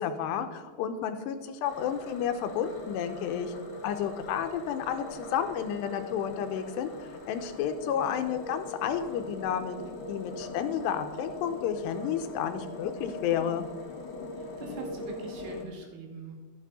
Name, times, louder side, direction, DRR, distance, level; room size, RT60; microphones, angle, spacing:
voice 1, 0.0-3.5 3.8-6.9 7.3-9.8 10.1-13.7, left 8 dB, 85° left, 8 dB, 2.9 m, -31 dB
sound 1, 1.6-15.6, left 2 dB, 65° left, 1.1 m, -41 dB
voice 2, 14.3-16.4, right 4 dB, 80° right, 2 dB, 3.6 m, -42 dB
12.5 x 8.5 x 4.1 m, 1.4 s
omnidirectional pair, 4.9 m